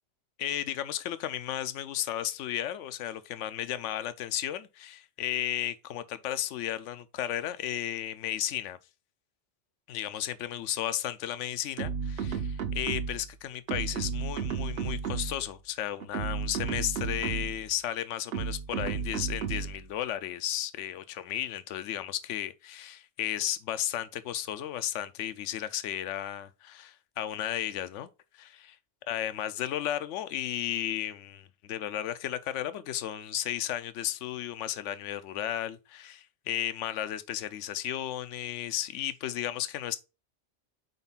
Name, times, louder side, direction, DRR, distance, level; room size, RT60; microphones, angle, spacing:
voice 1, 0.4-8.8 9.9-28.1 28.3-28.7 29.1-40.0, left 11 dB, 85° left, 0.9 m, -34 dB
sound 1, 11.8-13.3 13.7-15.5 16.0-17.7 18.3-19.8, right 6 dB, 60° right, 0.9 m, -33 dB
4.4 x 4.1 x 5.4 m
omnidirectional pair, 1.2 m